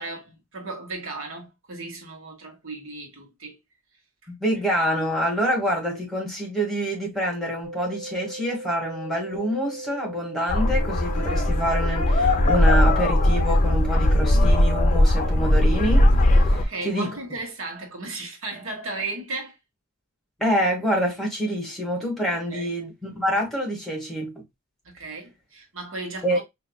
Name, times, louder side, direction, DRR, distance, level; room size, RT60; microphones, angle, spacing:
voice 1, 0.0-3.6 16.5-19.6 22.5-22.7 24.8-26.4, right 3 dB, 70° right, 1.4 m, -35 dB
voice 2, 4.3-17.2 20.4-24.3 26.2-26.4, equal, ahead, 1.5 m, -26 dB
sound 1, 7.6-13.6, right 2 dB, 20° right, 1.9 m, -38 dB
sound 2, 10.5-16.6, left 1 dB, 35° left, 0.6 m, -19 dB
4.9 x 2.8 x 2.2 m
head